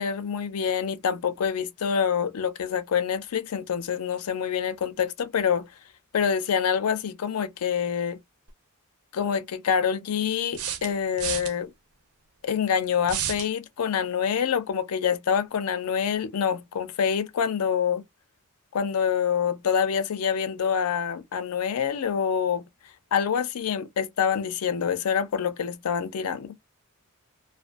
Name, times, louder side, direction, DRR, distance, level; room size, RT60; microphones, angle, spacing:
voice 1, 0.0-5.7 6.1-8.2 9.1-11.7 12.4-18.0 18.7-22.7 23.1-26.5, left 7 dB, 80° left, 0.4 m, -26 dB
sound 1, 8.5-8.6 10.5-11.5 13.1-13.5, right 9 dB, 75° right, 0.5 m, -31 dB
2.5 x 2.2 x 2.3 m
head